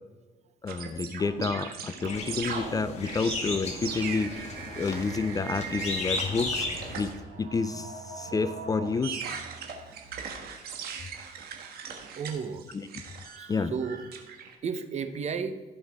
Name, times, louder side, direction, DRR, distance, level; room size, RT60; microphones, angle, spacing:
voice 1, 0.6-4.5 4.8-6.7 6.9-7.1 7.4-9.2 12.7-12.9 13.5-13.7, left 4 dB, 20° left, 12 dB, 0.4 m, -29 dB
sound 1, 0.7-14.6, right 6 dB, 65° right, 1.5 m, -39 dB
sound 2, 2.1-7.1, left 3 dB, 40° left, 2.0 m, -35 dB
sound 3, 4.5-12.6, right 5 dB, 80° right, 2.3 m, -51 dB
voice 2, 12.2-12.6 13.4-14.0 14.6-15.6, right 6 dB, 40° right, 9 dB, 0.8 m, -33 dB
16.5 x 5.6 x 3.5 m, 1.2 s
cardioid pair, 110°, 17 cm